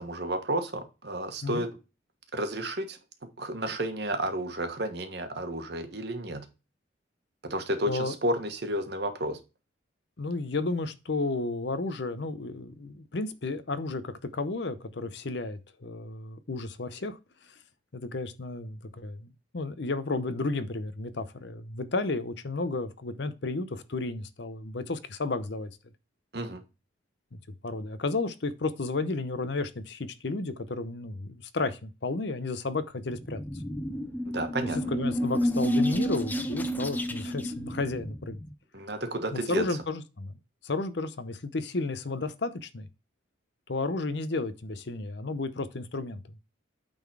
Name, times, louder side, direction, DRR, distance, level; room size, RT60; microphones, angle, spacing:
voice 1, 0.0-1.7 2.3-3.0 3.4-6.5 7.4-9.4 26.3-26.6 34.3-34.8 38.7-39.6, right 1 dB, 55° right, 1.3 m, -31 dB
voice 2, 10.2-17.2 17.9-25.7 27.6-33.4 34.6-38.4 39.3-40.4 40.6-42.9 43.7-46.2, left 3 dB, 60° left, 0.7 m, -32 dB
sound 1, 33.1-38.5, equal, 10° left, 0.5 m, -30 dB
8.8 x 4.0 x 4.7 m
head